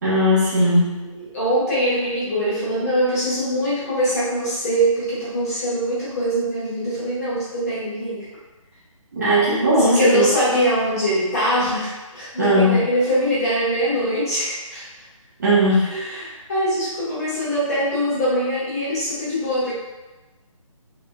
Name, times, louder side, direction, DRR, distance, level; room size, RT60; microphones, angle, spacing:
voice 1, 0.0-0.9 9.1-10.3 12.4-12.8 15.4-15.9, equal, 30° right, -10 dB, 1.0 m, -17 dB
voice 2, 0.7-8.2 9.8-14.8 15.8-19.7, equal, 25° left, -10 dB, 1.1 m, -23 dB
3.4 x 2.6 x 2.2 m, 1.1 s
figure-of-eight pair, 150°, 17 cm